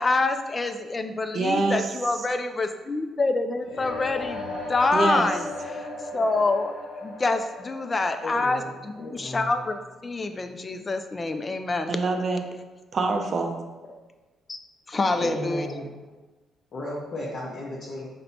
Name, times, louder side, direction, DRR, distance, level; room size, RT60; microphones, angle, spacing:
voice 1, 0.0-6.7 7.0-12.0 14.5-14.6 14.9-15.7, left 3 dB, 30° left, 8 dB, 0.3 m, -26 dB
voice 2, 1.3-1.9 4.9-5.3 11.9-12.4 12.9-13.6, right 3 dB, 55° right, 4 dB, 0.5 m, -25 dB
sound 1, 3.6-9.5, left 2 dB, 70° left, 1.1 m, -36 dB
voice 3, 8.2-8.7 9.0-9.6 15.2-15.9 16.7-18.1, left 1 dB, 55° left, -7 dB, 0.8 m, -34 dB
4.2 x 2.2 x 4.0 m, 1.2 s
cardioid pair, 90°, 0 cm